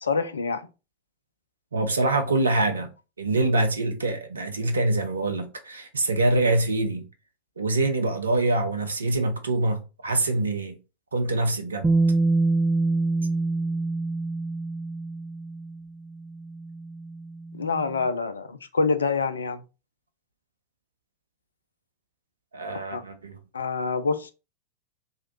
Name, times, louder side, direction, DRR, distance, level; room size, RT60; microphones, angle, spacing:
voice 1, 0.0-0.7 17.5-19.6 22.9-23.0 23.5-24.3, left 4 dB, 70° left, 0.4 m, -26 dB
voice 2, 1.7-2.9 3.2-7.0 7.6-10.8 11.1-11.9 22.5-23.4, right 2 dB, 75° right, 0.5 m, -25 dB
Bass guitar, 11.8-17.9, right 3 dB, 15° right, 0.4 m, -26 dB
2.9 x 2.4 x 3.0 m
figure-of-eight pair, 90°, 0 cm